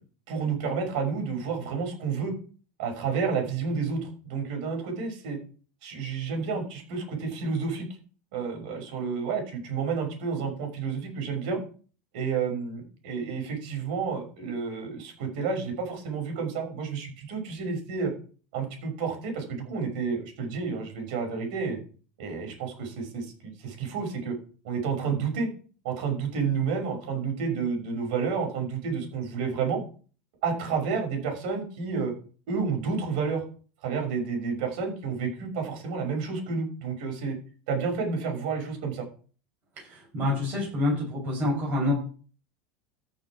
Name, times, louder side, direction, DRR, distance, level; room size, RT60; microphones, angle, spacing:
voice 1, 0.3-2.3 2.8-5.4 5.8-7.9 8.3-11.6 12.1-18.1 18.5-21.8 22.2-24.4 24.6-25.5 25.8-29.8 30.4-32.1 32.5-33.4 33.8-37.4 37.7-39.1, right 5 dB, 65° right, 3 dB, 6.0 m, -30 dB
voice 2, 39.8-41.9, left 2 dB, 35° right, -2 dB, 6.9 m, -27 dB
14.0 x 7.0 x 4.8 m, 0.40 s
supercardioid pair, 165°, 5 cm